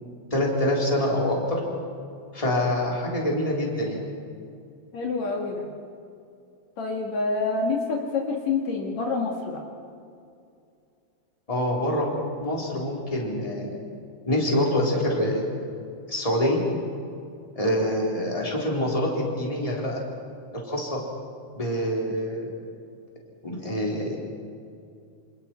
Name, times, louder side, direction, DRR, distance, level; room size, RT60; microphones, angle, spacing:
voice 1, 0.3-1.6 2.3-4.0 11.5-12.1 12.4-13.7 14.3-15.6 16.1-16.6 17.5-20.0 20.5-21.0 21.5-22.5 23.4-24.1, left 1 dB, 10° left, -3 dB, 4.0 m, -25 dB
voice 2, 4.9-5.7 6.8-9.6, left 4 dB, 70° left, 0 dB, 3.5 m, -27 dB
28.5 x 27.5 x 4.6 m, 2.5 s
omnidirectional pair, 3.3 m